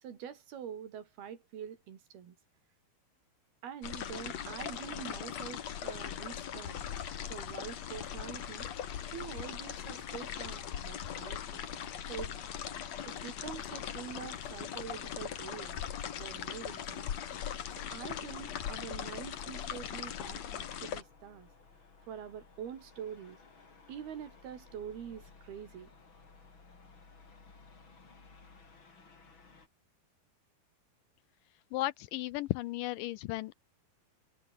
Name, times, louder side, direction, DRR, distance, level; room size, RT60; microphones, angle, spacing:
voice 1, 0.0-2.4 3.6-6.9 7.2-8.7 9.1-11.7 12.1-12.4 13.1-15.8 16.2-17.1 17.7-21.5 22.1-23.4 23.9-25.9, right 8 dB, 75° right, 4.5 m, -45 dB
sound 1, 3.8-21.0, left 9 dB, 50° left, 2.5 m, -40 dB
sound 2, 10.6-29.7, left 4 dB, 30° left, 4.3 m, -60 dB
voice 2, 31.7-33.5, left 17 dB, 90° left, 1.9 m, -35 dB
omnidirectional pair, 4.5 m